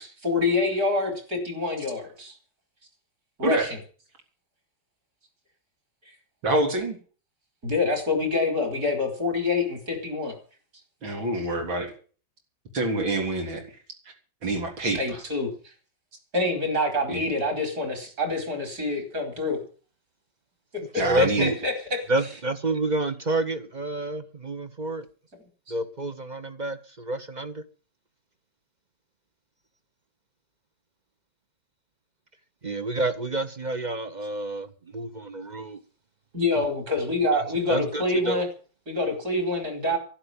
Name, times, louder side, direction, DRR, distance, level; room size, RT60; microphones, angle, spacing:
voice 1, 0.0-2.3 3.4-3.8 7.6-10.3 14.9-15.7 16.3-19.6 21.2-21.7 36.3-38.5 38.9-40.0, left 2 dB, 45° right, 5.1 m, -26 dB
voice 2, 6.4-7.0 11.0-11.9 12.7-13.6 14.4-15.2 17.1-17.2 21.0-21.5, right 2 dB, 80° right, 4.6 m, -26 dB
voice 3, 20.9-21.6 22.1-25.0 25.7-27.6 32.6-35.8 36.6-36.7 37.3-37.4 37.7-38.4, right 2 dB, 30° right, 0.8 m, -29 dB
12.0 x 10.5 x 8.8 m
omnidirectional pair, 2.1 m